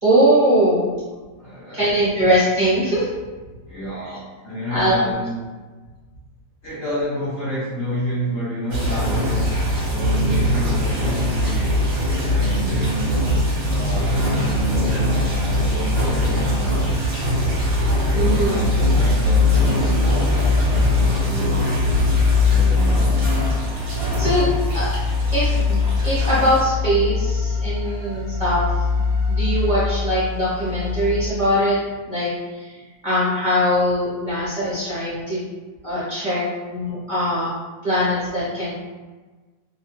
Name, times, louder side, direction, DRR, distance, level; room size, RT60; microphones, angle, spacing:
voice 1, 0.0-0.9 1.7-3.1 4.0-4.2 4.7-4.9 18.1-18.7 23.9-24.9 25.3-28.6 28.9-31.8 32.1-32.7 33.0-35.4 35.8-37.5 37.8-38.7, equal, 35° right, -11 dB, 0.9 m, -21 dB
voice 2, 1.4-2.0 3.7-5.3 6.6-9.5 9.9-11.7 12.3-16.9 18.1-21.7 22.4-23.3, equal, 60° left, -8 dB, 0.8 m, -30 dB
sound 1, 8.7-26.6, equal, 65° right, 1.2 m, -22 dB
sound 2, 19.2-31.3, left 4 dB, 80° left, 1.1 m, -22 dB
2.8 x 2.2 x 2.8 m, 1.3 s
omnidirectional pair, 1.7 m